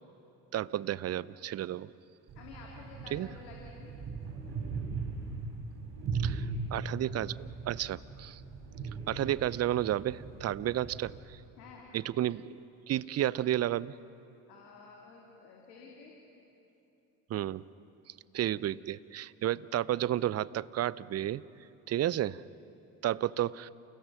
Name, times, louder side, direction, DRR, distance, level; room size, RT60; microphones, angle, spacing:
voice 1, 0.5-1.9 3.1-3.3 6.2-8.4 9.1-11.4 11.9-13.9 17.3-17.6 18.3-21.4 21.9-22.4 23.0-23.7, right 12 dB, 35° right, 20 dB, 0.5 m, -32 dB
voice 2, 2.3-3.9 11.6-11.9 14.5-16.1, left 4 dB, 80° left, -1 dB, 2.6 m, -51 dB
sound 1, 2.3-11.2, right 4 dB, 50° right, 6.1 m, -39 dB
29.0 x 16.5 x 5.9 m, 3.0 s
hypercardioid pair, 60°, 48 cm